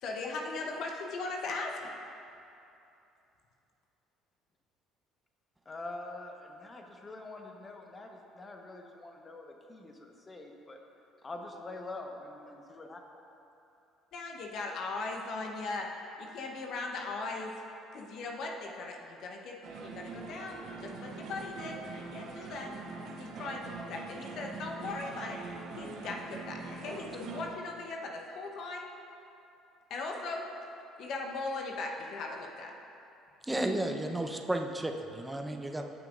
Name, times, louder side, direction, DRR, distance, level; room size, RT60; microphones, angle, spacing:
voice 1, 0.0-1.8 14.1-15.9 16.2-17.5 17.9-22.7 23.2-25.4 25.7-28.9 29.9-30.5 31.0-32.7, left 3 dB, 60° left, 1 dB, 1.0 m, -38 dB
voice 2, 5.6-10.8 11.2-13.0, left 2 dB, 30° left, 2 dB, 1.2 m, -45 dB
sound 1, 19.6-27.5, right 4 dB, 60° right, 1.1 m, -43 dB
voice 3, 33.5-35.8, right 1 dB, 10° right, 3 dB, 0.8 m, -33 dB
16.5 x 6.0 x 2.6 m, 2.8 s
hypercardioid pair, 60°, 0 cm